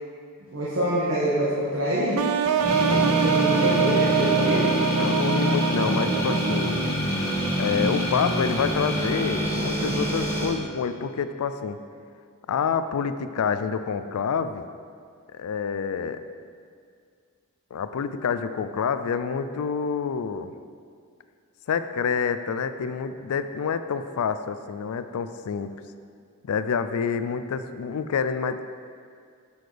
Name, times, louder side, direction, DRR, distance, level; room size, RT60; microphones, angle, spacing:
voice 1, 0.5-2.2 2.9-4.7 9.8-10.0, equal, 60° right, -7 dB, 1.2 m, -26 dB
sound 1, 2.2-7.0, right 7 dB, 85° right, 0.3 m, -25 dB
sound 2, 2.6-10.5, equal, 10° left, 1.4 m, -25 dB
voice 2, 4.9-6.8 7.6-11.8 12.5-14.6 15.3-16.2 17.7-20.5 21.7-25.7 26.5-28.6, left 6 dB, 85° left, 11 dB, 0.4 m, -27 dB
7.6 x 7.0 x 3.3 m, 2.2 s
head